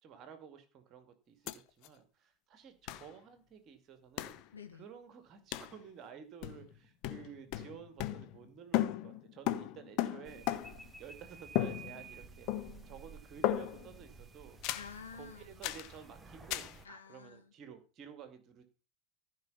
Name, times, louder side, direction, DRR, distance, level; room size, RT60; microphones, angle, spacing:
voice 1, 0.0-4.4 4.7-10.5 11.0-14.6 15.1-18.6, right 7 dB, 40° right, 2.1 m, -53 dB
sound 1, 1.5-1.6 1.8-1.9 2.9-3.1 4.2-4.4 5.5-5.8 6.4-6.8 7.0-8.5 8.7-10.9 11.5-12.2 12.5-12.9 13.4-13.9 14.6-15.0 15.6-15.9 16.5-16.8, left 14 dB, 50° left, 0.8 m, -36 dB
voice 2, 4.5-4.9 14.7-15.6 16.8-17.5, left 6 dB, 75° left, 1.9 m, -50 dB
sound 2, 10.2-16.9, right 4 dB, 15° right, 1.4 m, -53 dB
15.0 x 5.1 x 5.6 m
figure-of-eight pair, 80°, 0 cm